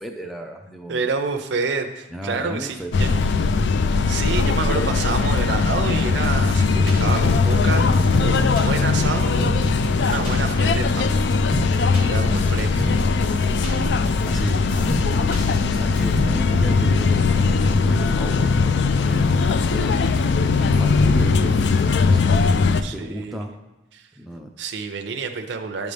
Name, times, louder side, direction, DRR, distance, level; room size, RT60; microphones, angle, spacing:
voice 1, 0.0-1.0 2.1-3.0 4.3-4.4 14.3-20.0 20.6-22.4 22.8-23.6 24.2-24.5, equal, ahead, 1 dB, 0.4 m, -34 dB
voice 2, 0.9-3.2 3.8-11.6 12.0-12.9 22.8-23.4 23.9-24.1 24.6-25.9, right 4 dB, 75° right, 5 dB, 0.5 m, -28 dB
sound 1, 2.9-22.8, left 4 dB, 70° left, 0.4 m, -19 dB
sound 2, 6.0-16.2, equal, 50° left, 2.3 m, -29 dB
10.5 x 5.2 x 3.4 m, 1.0 s
head